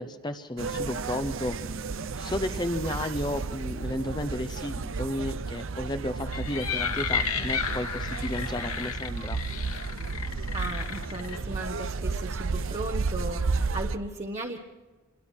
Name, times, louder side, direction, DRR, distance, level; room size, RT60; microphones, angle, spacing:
voice 1, 0.0-1.8 2.2-9.4, left 1 dB, 20° left, 8 dB, 0.8 m, -33 dB
sound 1, 0.6-14.0, right 4 dB, 60° right, 0.7 m, -33 dB
sound 2, 6.2-11.4, left 6 dB, 90° left, 2.1 m, -33 dB
voice 2, 10.5-14.6, right 2 dB, 30° right, 1 dB, 1.1 m, -36 dB
27.0 x 22.5 x 4.5 m, 1.3 s
head